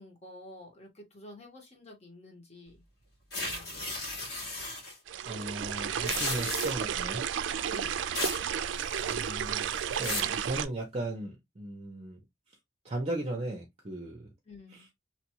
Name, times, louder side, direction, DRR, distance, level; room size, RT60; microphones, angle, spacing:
voice 1, 0.0-2.8 3.3-4.0 7.6-8.0 14.5-14.9, left 1 dB, 35° left, 1.3 m, -50 dB
sound 1, 3.3-4.9 5.9-6.9 8.1-8.5 8.8-9.3 9.7-10.4, left 2 dB, 65° left, 1.9 m, -35 dB
sound 2, 5.1-10.7, right 8 dB, 85° right, 0.3 m, -32 dB
voice 2, 5.2-7.2 9.1-12.2 12.8-14.3 14.7-14.9, right 1 dB, 35° right, 0.7 m, -37 dB
3.0 x 2.4 x 2.8 m
head